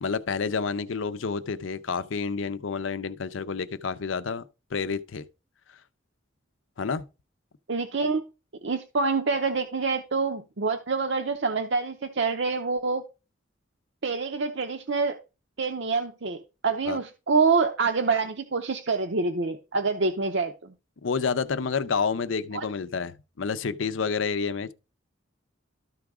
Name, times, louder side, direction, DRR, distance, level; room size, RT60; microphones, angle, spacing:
voice 1, 0.0-4.4 4.7-5.2 6.8-7.1 16.9-17.0 21.0-24.7, left 5 dB, 85° left, 0.6 m, -29 dB
voice 2, 7.7-8.2 8.6-13.0 14.0-15.2 15.6-20.7 22.5-22.6, right 4 dB, 65° right, 0.7 m, -26 dB
13.0 x 4.8 x 3.6 m
head